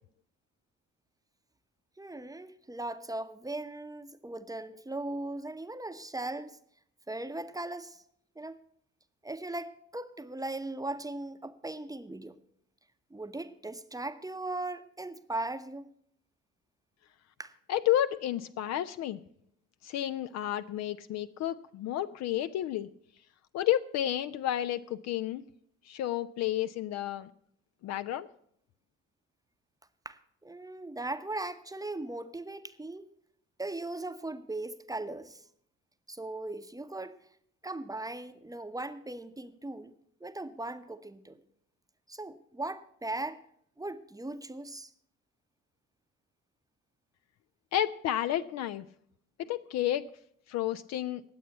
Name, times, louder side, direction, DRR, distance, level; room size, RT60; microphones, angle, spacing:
voice 1, 2.0-6.6 7.1-8.0 8.4-8.6 9.2-12.4 13.1-15.9 17.4-17.5 30.0-33.1 33.6-35.4 36.1-37.2 37.6-39.9 40.2-41.4 42.1-43.4 43.8-44.9, right 2 dB, 10° right, 10 dB, 0.8 m, -38 dB
voice 2, 17.7-19.2 19.8-22.9 23.5-25.4 25.9-27.3 27.8-28.3 47.7-48.8 49.4-50.1 50.5-51.2, left 12 dB, 45° left, 12 dB, 0.5 m, -31 dB
10.5 x 8.4 x 8.0 m, 0.68 s
figure-of-eight pair, 45°, 37 cm